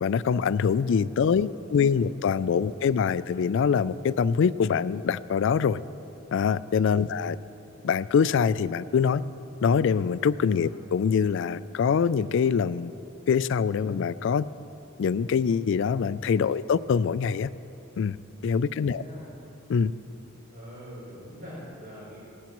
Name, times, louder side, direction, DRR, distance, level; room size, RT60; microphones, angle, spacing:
voice 1, 0.0-5.8 6.3-7.4 7.8-9.2 9.6-12.9 13.3-14.5 15.0-17.5 18.0-18.2 18.4-19.0 19.7-19.9, left 6 dB, 65° left, 17 dB, 0.3 m, -24 dB
voice 2, 1.1-1.9 6.9-7.1 10.4-10.7 18.6-19.3 20.5-22.2, equal, 55° right, -8 dB, 3.6 m, -45 dB
18.5 x 14.5 x 3.0 m, 2.8 s
head